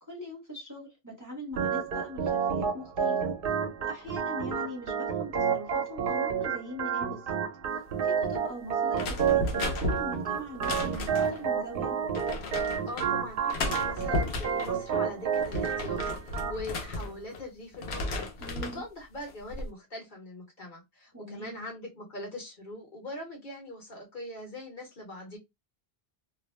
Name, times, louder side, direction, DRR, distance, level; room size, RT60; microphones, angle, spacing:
voice 1, 0.1-3.3 3.8-7.4 8.0-12.0 18.4-18.8 21.1-21.6, equal, 20° right, 0.8 m, -42 dB
Organ, 1.5-16.6, right 7 dB, 65° right, 0.8 m, -30 dB
sound 1, 8.9-11.4 12.1-13.1 13.5-14.7 15.2-17.4 17.7-18.8 19.3-19.7, left 2 dB, 90° left, 0.9 m, -34 dB
voice 2, 12.9-18.3 18.6-25.4, left 1 dB, 55° left, 1.1 m, -42 dB
2.4 x 2.0 x 3.1 m
omnidirectional pair, 1.0 m